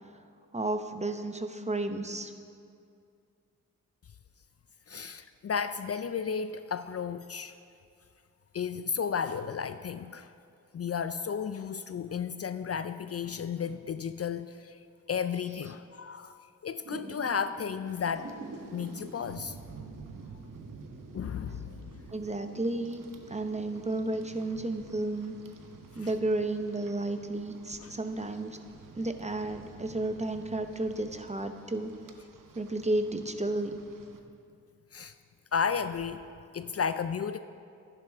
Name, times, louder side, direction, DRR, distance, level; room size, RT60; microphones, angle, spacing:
voice 1, 0.5-2.3 22.1-25.3 26.0-28.6 29.0-31.9 32.5-33.8, right 2 dB, 20° right, 7 dB, 0.8 m, -32 dB
voice 2, 4.9-7.6 8.5-10.3 10.7-14.8 15.1-16.4 16.6-18.3 18.7-19.6 21.1-22.0 25.9-26.1 27.8-27.9 34.9-35.1 35.5-36.2 36.5-37.4, left 6 dB, 45° left, 11 dB, 0.4 m, -33 dB
Thunder / Rain, 16.8-29.1, right 2 dB, 50° right, 1.3 m, -50 dB
Rain, 17.9-34.2, right 4 dB, 70° right, 0.9 m, -51 dB
11.5 x 11.0 x 3.5 m, 2.4 s
cardioid pair, 50°, 33 cm